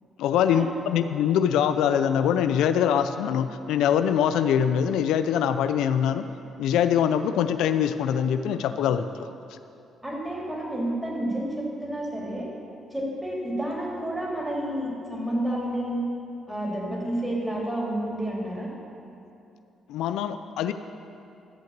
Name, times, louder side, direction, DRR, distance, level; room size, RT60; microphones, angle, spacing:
voice 1, 0.2-6.2 6.6-9.1 19.9-20.7, left 9 dB, 90° left, 10 dB, 0.4 m, -23 dB
voice 2, 10.0-12.5 12.9-16.0 16.5-18.7, right 1 dB, 10° right, -4 dB, 3.2 m, -30 dB
13.5 x 5.8 x 7.3 m, 2.7 s
cardioid pair, 90°, 0 cm